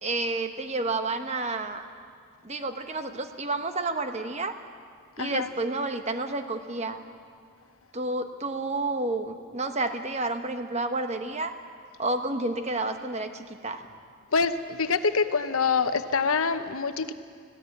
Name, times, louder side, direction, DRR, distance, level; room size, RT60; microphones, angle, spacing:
voice 1, 0.0-1.9 2.4-4.5 5.2-7.0 7.9-11.5 12.0-13.8, right 2 dB, 30° right, 7 dB, 1.1 m, -30 dB
voice 2, 5.2-5.5 14.3-17.1, left 5 dB, 80° left, 10 dB, 1.0 m, -25 dB
21.0 x 16.0 x 8.5 m, 2.1 s
head